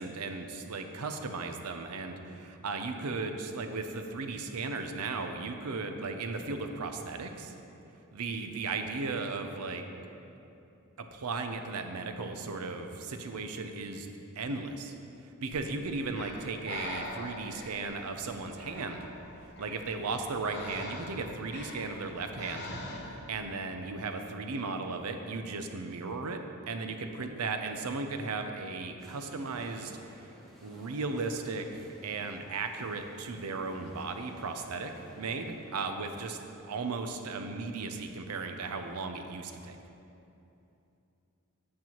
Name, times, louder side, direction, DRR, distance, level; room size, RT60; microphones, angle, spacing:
voice 1, 0.0-7.5 8.1-9.9 11.0-14.1 14.4-14.9 15.4-19.1 19.6-22.7 23.3-26.4 26.7-30.3 30.6-36.4 36.7-39.8, right 3 dB, 85° right, 6 dB, 0.6 m, -36 dB
Breathing, 15.5-23.4, left 2 dB, 50° left, 0.9 m, -44 dB
sound 1, 29.0-35.9, equal, ahead, 1.0 m, -55 dB
8.5 x 7.4 x 3.0 m, 2.8 s
head